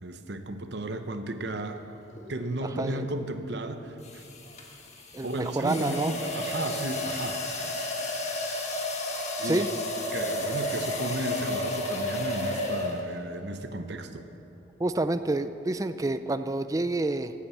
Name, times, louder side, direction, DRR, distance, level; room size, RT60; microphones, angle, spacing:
voice 1, 0.0-1.8 2.3-4.2 5.2-7.4 9.4-9.6 10.1-14.3, right 2 dB, 60° right, 8 dB, 0.9 m, -34 dB
sound 1, 2.1-2.4 4.0-13.2, left 1 dB, 35° left, 1.5 m, -32 dB
voice 2, 2.6-3.0 5.1-6.1 9.4-9.7 14.8-17.3, right 2 dB, 15° right, 11 dB, 0.3 m, -28 dB
16.5 x 8.6 x 7.2 m, 2.9 s
head